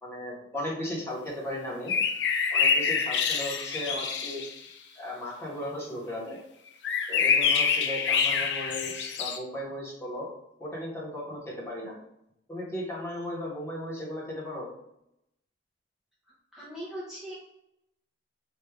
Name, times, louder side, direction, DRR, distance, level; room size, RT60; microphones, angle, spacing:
voice 1, 0.0-1.9 2.5-4.4 5.0-6.4 7.1-10.3 10.6-12.0 12.5-14.7, left 1 dB, 15° left, -5 dB, 1.1 m, -36 dB
voice 2, 1.2-1.6 3.6-3.7 16.3-17.3, equal, ahead, -8 dB, 0.6 m, -42 dB
sound 1, 1.9-4.6 6.8-9.4, left 6 dB, 70° left, 0.4 m, -26 dB
3.4 x 2.5 x 3.4 m, 0.81 s
head